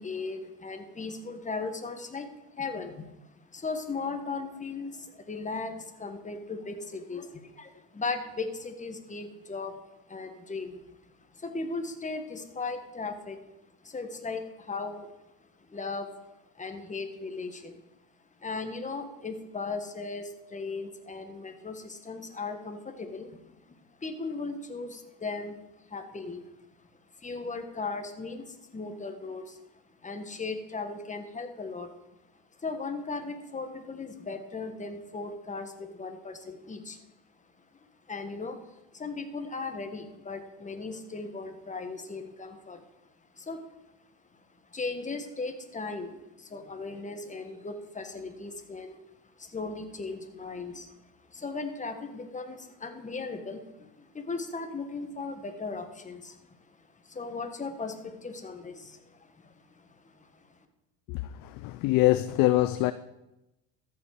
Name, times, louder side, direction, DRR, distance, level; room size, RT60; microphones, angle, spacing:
voice 1, 0.0-9.8 10.1-11.0 11.3-13.4 13.8-15.1 15.7-16.1 16.5-17.8 18.4-25.6 25.9-26.4 27.2-29.6 30.0-31.9 32.6-37.0 38.1-38.6 38.9-42.8 43.4-43.6 44.7-49.0 49.4-50.9 51.3-60.4, left 3 dB, 15° left, 1.5 m, -37 dB
voice 2, 61.1-62.9, left 17 dB, 45° left, 0.5 m, -24 dB
13.5 x 7.3 x 4.9 m
hypercardioid pair, 90°, 47 cm